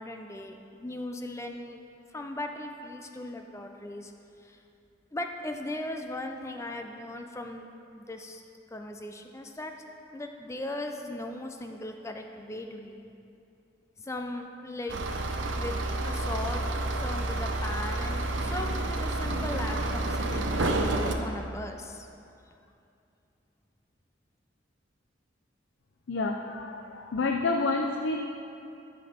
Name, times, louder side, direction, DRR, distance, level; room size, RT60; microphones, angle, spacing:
voice 1, 0.0-1.8 2.1-4.1 4.4-4.6 5.1-8.4 8.7-9.9 10.1-13.0 14.0-16.6 16.9-22.1, left 1 dB, 15° left, 4 dB, 0.4 m, -38 dB
sound 1, 14.9-21.1, right 2 dB, 75° right, 0.7 m, -29 dB
voice 2, 26.1-28.2, left 3 dB, 70° left, 2 dB, 0.5 m, -29 dB
13.0 x 5.3 x 4.3 m, 2.6 s
head